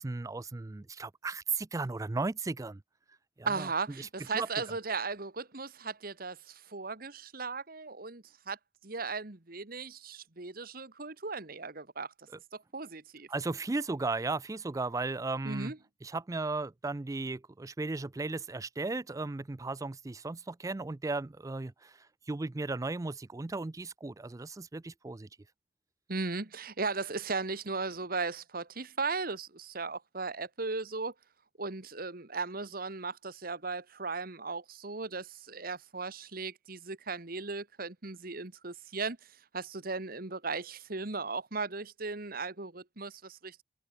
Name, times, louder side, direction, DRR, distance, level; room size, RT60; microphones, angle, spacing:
voice 1, 0.0-2.8 3.4-3.7 4.0-4.1 4.3-4.5 13.3-15.7 16.0-25.3, right 3 dB, 20° right, 0.4 m, -35 dB
voice 2, 3.5-8.6 8.8-12.1 12.5-13.3 15.4-15.8 26.1-31.1 31.6-43.6, right 4 dB, 55° right, 1.8 m, -37 dB
head